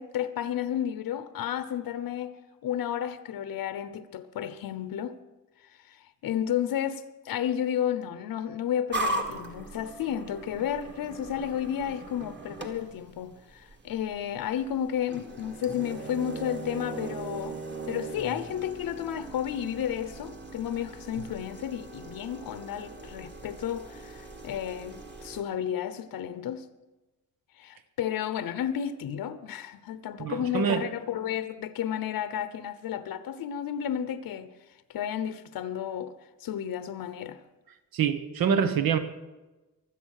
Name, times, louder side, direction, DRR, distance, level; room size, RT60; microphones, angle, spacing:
voice 1, 0.0-5.2 5.9-17.6 17.9-26.6 27.6-34.5 34.9-36.1 36.4-37.4, left 10 dB, 85° left, 0.9 m, -32 dB
sound 1, 8.9-25.4, right 2 dB, 30° right, 1.8 m, -39 dB
voice 2, 30.2-30.8 37.9-39.0, right 7 dB, 80° right, 1.3 m, -25 dB
23.0 x 8.1 x 6.6 m
wide cardioid pair, 150°, 34 cm